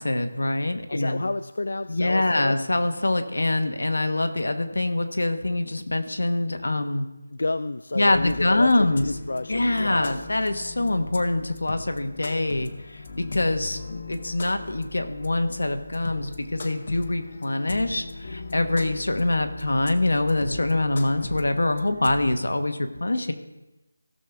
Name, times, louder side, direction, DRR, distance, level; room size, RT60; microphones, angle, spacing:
voice 1, 0.0-1.2 1.9-7.1 7.9-9.1 9.5-23.3, left 2 dB, 85° left, 7 dB, 1.2 m, -24 dB
voice 2, 0.9-2.6 7.3-10.3, left 2 dB, 60° left, 11 dB, 0.3 m, -30 dB
sound 1, 8.1-22.4, left 3 dB, 35° left, 0.7 m, -39 dB
16.5 x 6.6 x 3.5 m, 1.0 s
figure-of-eight pair, 175°, 0 cm